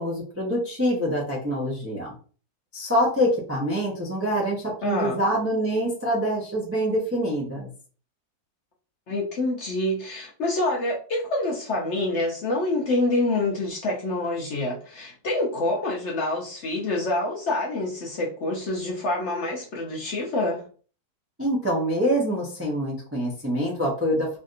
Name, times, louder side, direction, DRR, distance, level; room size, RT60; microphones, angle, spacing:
voice 1, 0.0-2.1 2.7-7.7 21.4-24.4, equal, 15° right, -4 dB, 0.5 m, -25 dB
voice 2, 4.8-5.2 9.1-20.6, left 2 dB, 60° left, -2 dB, 0.8 m, -26 dB
3.3 x 2.6 x 2.5 m, 0.40 s
omnidirectional pair, 1.7 m